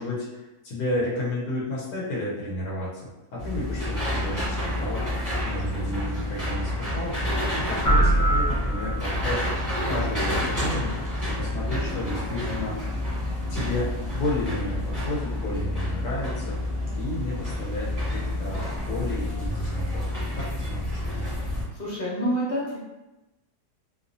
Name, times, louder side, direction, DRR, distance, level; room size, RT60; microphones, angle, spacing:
voice 1, 0.0-3.0 3.3-5.0 5.3-7.2 7.6-9.5 9.9-10.9 11.3-12.8 13.5-16.7 16.9-20.1 20.3-21.2, left 1 dB, 90° left, -6 dB, 1.3 m, -32 dB
sound 1, 3.4-21.6, left 1 dB, 20° right, 0.5 m, -29 dB
sound 2, 7.8-9.4, right 1 dB, 60° left, 0.5 m, -22 dB
voice 2, 21.7-22.8, equal, 35° left, -7 dB, 0.8 m, -28 dB
3.0 x 2.0 x 2.6 m, 1.0 s
omnidirectional pair, 1.7 m